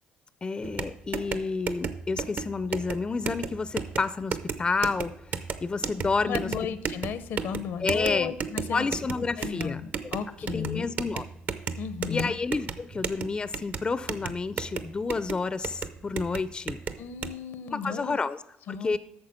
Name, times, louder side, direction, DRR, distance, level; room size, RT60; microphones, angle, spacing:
voice 1, 0.4-6.5 7.8-8.3 8.7-10.1 10.5-11.2 12.1-16.8 17.7-18.4 18.7-19.0, left 4 dB, 25° left, 15 dB, 0.4 m, -30 dB
sound 1, 0.6-17.3, right 6 dB, 55° right, 0.7 m, -35 dB
voice 2, 6.2-8.9 9.4-10.9 11.8-12.3 17.0-18.2 18.7-19.0, left 7 dB, 70° left, 13 dB, 0.7 m, -34 dB
8.9 x 6.6 x 5.6 m, 0.83 s
supercardioid pair, 85°, 4 cm